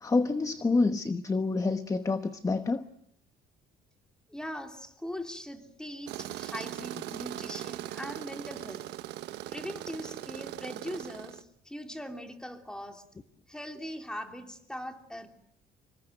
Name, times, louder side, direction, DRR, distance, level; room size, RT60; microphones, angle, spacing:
voice 1, 0.0-2.8, left 3 dB, 20° left, 1.0 m, -27 dB
voice 2, 4.3-8.9 9.5-13.1 13.5-15.3, equal, 5° left, 3.0 m, -41 dB
Tools, 6.1-11.4, right 14 dB, 85° right, 1.2 m, -40 dB
26.5 x 23.0 x 7.9 m
cardioid pair, 110°, 17 cm